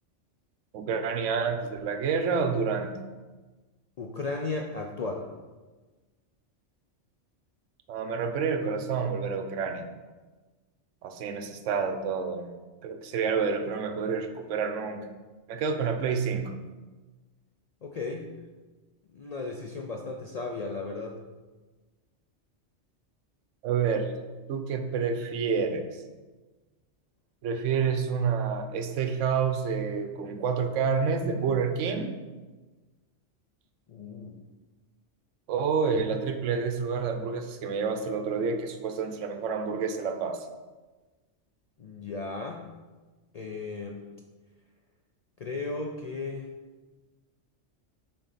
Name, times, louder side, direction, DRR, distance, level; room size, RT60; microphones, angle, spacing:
voice 1, 0.7-3.0 7.9-9.9 11.0-12.5 12.8-15.1 15.5-16.6 23.6-24.1 24.5-25.9 27.4-32.1 35.5-40.5, right 5 dB, 80° right, 7 dB, 1.0 m, -28 dB
voice 2, 4.0-5.3 17.8-18.3 19.1-21.2 33.9-34.4 41.8-42.6 43.3-44.0 45.4-46.5, left 3 dB, 80° left, 2 dB, 0.3 m, -35 dB
6.6 x 3.9 x 4.1 m, 1.3 s
omnidirectional pair, 1.3 m